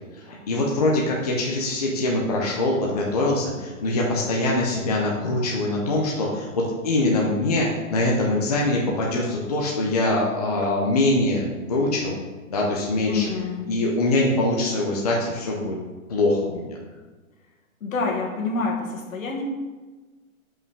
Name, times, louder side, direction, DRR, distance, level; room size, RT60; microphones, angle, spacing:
voice 1, 0.1-12.2 12.5-13.3 13.7-15.8 16.1-16.8, left 2 dB, 30° left, -3 dB, 0.6 m, -23 dB
voice 2, 13.0-13.7 17.8-19.4, left 3 dB, 70° left, 0 dB, 1.8 m, -27 dB
5.5 x 5.4 x 4.7 m, 1.3 s
hypercardioid pair, 175°, 42 cm